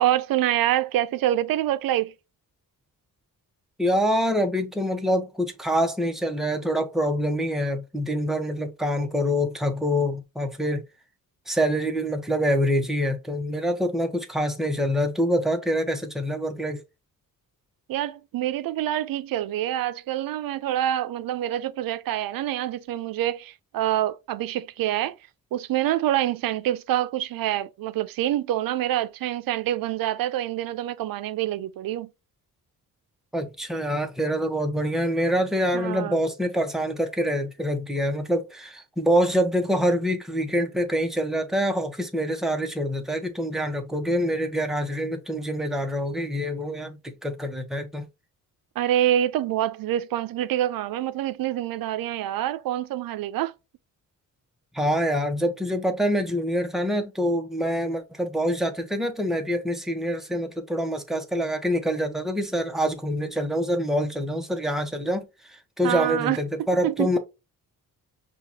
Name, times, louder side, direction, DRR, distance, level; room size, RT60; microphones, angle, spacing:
voice 1, 0.0-2.1 17.9-25.2 25.5-32.1 35.7-36.2 48.8-53.5 65.8-66.4 66.8-67.1, right 12 dB, 75° right, 0.5 m, -26 dB
voice 2, 3.8-10.8 11.5-16.8 33.3-48.1 54.7-67.2, equal, ahead, 0.9 m, -25 dB
5.7 x 2.4 x 2.7 m
cardioid pair, 100°, 35 cm